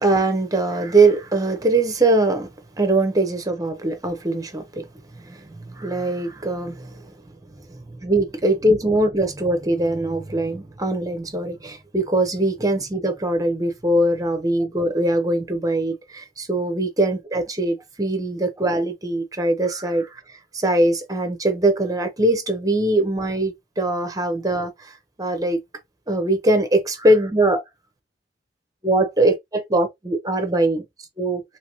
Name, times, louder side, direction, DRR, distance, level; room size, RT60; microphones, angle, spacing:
voice 1, 0.0-2.5 2.8-4.9 5.1-7.1 7.6-20.2 20.5-24.9 25.2-25.6 26.1-27.6 28.8-30.8 31.2-31.4, right 2 dB, 20° right, 0.8 m, -22 dB
3.0 x 2.8 x 3.0 m
head